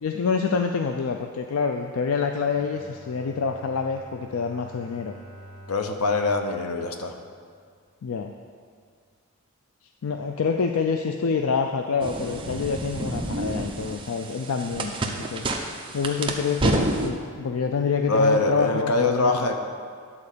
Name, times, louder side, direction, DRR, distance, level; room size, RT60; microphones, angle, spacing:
voice 1, 0.0-5.1 8.0-8.3 10.0-15.5 15.9-19.5, left 5 dB, 65° left, 5 dB, 0.4 m, -27 dB
Bowed string instrument, 2.4-7.7, equal, 45° left, 1.9 m, -47 dB
voice 2, 5.7-7.1 18.1-19.6, left 3 dB, 80° left, 5 dB, 0.9 m, -23 dB
sound 1, 12.0-17.1, right 1 dB, 25° right, 0.7 m, -29 dB
10.5 x 4.3 x 6.7 m, 2.1 s
head